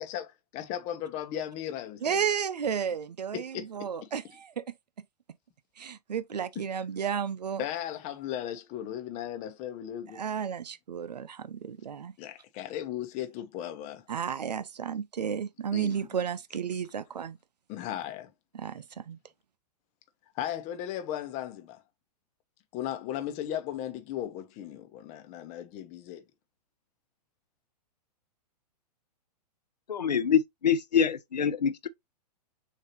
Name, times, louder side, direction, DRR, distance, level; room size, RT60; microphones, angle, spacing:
voice 1, 0.0-2.2 3.3-4.1 6.6-6.7 7.6-10.2 12.2-14.0 15.7-16.0 17.7-18.3 20.3-21.8 22.7-26.2, left 11 dB, 35° left, 0.9 m, -36 dB
voice 2, 2.0-4.6 5.8-7.6 10.1-12.1 14.1-17.4 18.5-19.2, right 7 dB, 80° right, 0.6 m, -32 dB
voice 3, 29.9-31.9, left 7 dB, 85° left, 0.6 m, -25 dB
6.4 x 2.8 x 2.9 m
hypercardioid pair, 115°, 21 cm